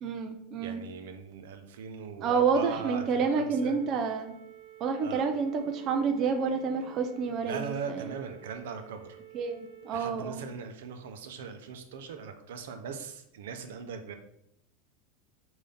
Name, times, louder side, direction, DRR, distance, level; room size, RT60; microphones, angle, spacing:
voice 1, 0.0-0.8 2.2-4.4 4.8-8.0 9.3-10.4, right 5 dB, 30° right, 4 dB, 0.4 m, -29 dB
voice 2, 0.6-3.8 5.0-5.2 7.4-9.2 9.9-14.2, right 6 dB, 85° right, 6 dB, 0.6 m, -40 dB
sound 1, 3.0-10.0, right 13 dB, 45° right, 1.2 m, -51 dB
5.4 x 2.7 x 3.4 m, 0.74 s
supercardioid pair, 175°, 0 cm